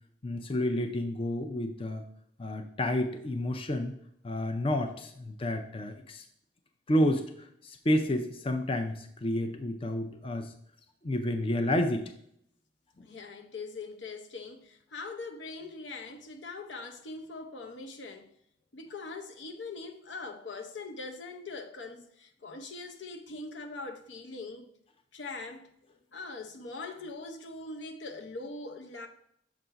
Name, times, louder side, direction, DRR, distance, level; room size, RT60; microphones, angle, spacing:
voice 1, 0.2-2.0 2.4-4.0 4.2-6.2 6.9-7.2 7.6-10.5 11.0-12.1, left 1 dB, 30° left, 0.4 m, -30 dB
voice 2, 13.0-18.3 18.7-24.7 25.1-25.7 26.1-29.1, left 3 dB, 80° left, 0.7 m, -42 dB
6.9 x 2.6 x 5.6 m
head